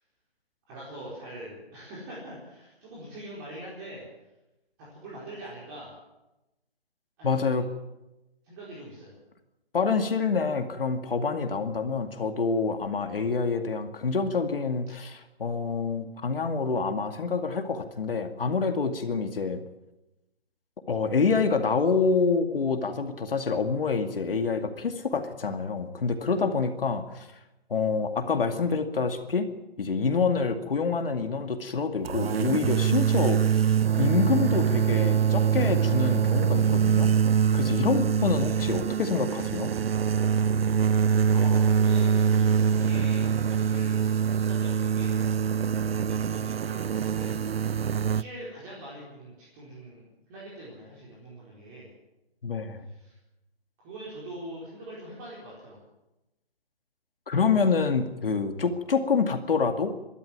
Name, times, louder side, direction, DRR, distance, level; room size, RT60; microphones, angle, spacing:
voice 1, 0.7-4.0 4.9-5.9 7.2-7.6 8.4-9.1 41.3-47.4 48.1-51.9 52.9-53.2 53.8-55.8, right 1 dB, 20° right, -6 dB, 4.5 m, -43 dB
voice 2, 7.2-7.7 9.7-19.6 20.9-27.3 27.7-29.5 29.8-37.1 37.5-39.7 52.4-52.8 57.3-60.0, left 5 dB, 60° left, 7 dB, 2.2 m, -27 dB
sound 1, 32.0-48.2, right 7 dB, 70° right, 0.6 m, -24 dB
23.5 x 12.5 x 9.5 m, 0.98 s
hypercardioid pair, 165°, 31 cm